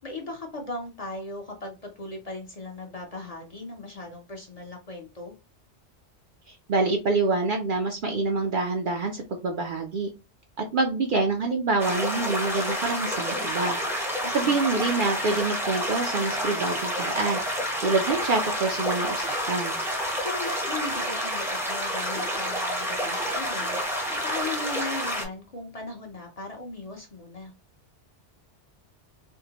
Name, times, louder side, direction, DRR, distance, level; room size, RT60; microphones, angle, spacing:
voice 1, 0.0-5.3 14.2-14.6 20.2-27.5, left 2 dB, 40° left, 0 dB, 0.6 m, -38 dB
voice 2, 6.5-10.1 10.6-13.8 14.3-17.4 17.8-19.8, right 3 dB, 60° right, 3 dB, 0.6 m, -26 dB
sound 1, 11.8-25.2, equal, 5° right, 0.5 m, -29 dB
3.6 x 2.1 x 2.8 m, 0.28 s
omnidirectional pair, 1.2 m